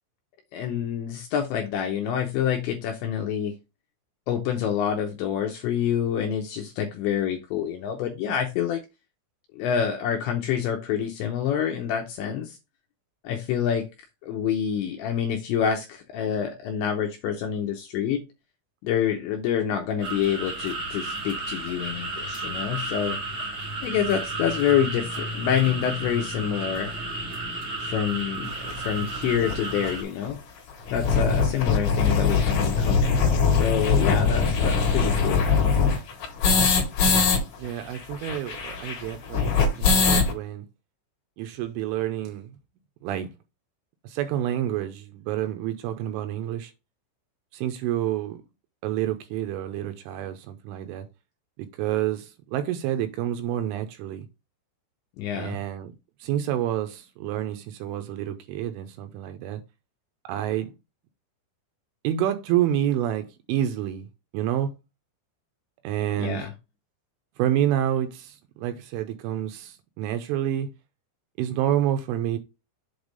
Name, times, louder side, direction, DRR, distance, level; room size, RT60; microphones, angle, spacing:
voice 1, 0.5-3.5 4.3-8.8 9.6-12.6 13.2-13.9 14.2-18.2 18.8-23.2 23.8-27.0 27.8-30.4 30.9-33.3 33.5-35.5 55.2-55.6 66.2-66.5, left 9 dB, 80° left, 2.6 m, -27 dB
sound 1, 20.0-30.0, right 2 dB, 65° right, 0.9 m, -33 dB
sound 2, 28.7-28.8 29.5-29.6 29.8-29.9 30.2-30.3 30.7-37.4 37.6-37.7 37.9-40.3, left 5 dB, 55° left, 2.6 m, -22 dB
voice 2, 37.6-40.7 41.4-42.6 43.0-43.3 44.0-46.7 47.5-48.4 48.8-51.1 51.6-54.3 55.3-55.9 56.2-59.6 60.2-60.7 62.0-64.1 64.3-64.7 65.8-66.5 67.4-70.7 71.4-72.4, right 11 dB, 80° right, 3.0 m, -28 dB
8.0 x 3.3 x 5.2 m
omnidirectional pair, 6.0 m